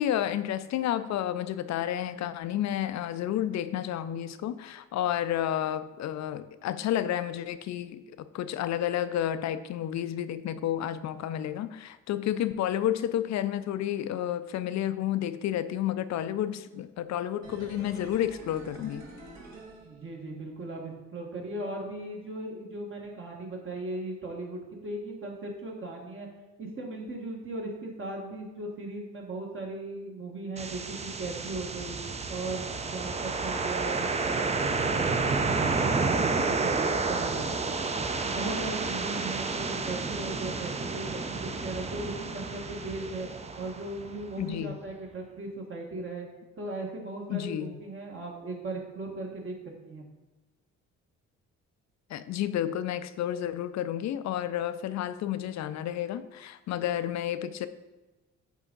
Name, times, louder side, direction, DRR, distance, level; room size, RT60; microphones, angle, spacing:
voice 1, 0.0-8.0 8.3-19.1 44.4-44.8 47.3-47.8 52.1-57.7, left 11 dB, 65° left, 13 dB, 0.5 m, -31 dB
sound 1, 17.4-20.5 20.8-20.9, right 2 dB, 65° right, 1.7 m, -47 dB
voice 2, 19.8-26.3 26.6-31.9 32.3-35.1 35.7-37.6 38.2-43.3 43.6-46.3 46.6-49.5 49.8-50.0, right 2 dB, 45° right, -1 dB, 1.4 m, -38 dB
sound 2, 30.6-44.4, right 4 dB, 20° right, 0.5 m, -30 dB
8.1 x 3.6 x 3.9 m, 1.1 s
cardioid pair, 90°, 30 cm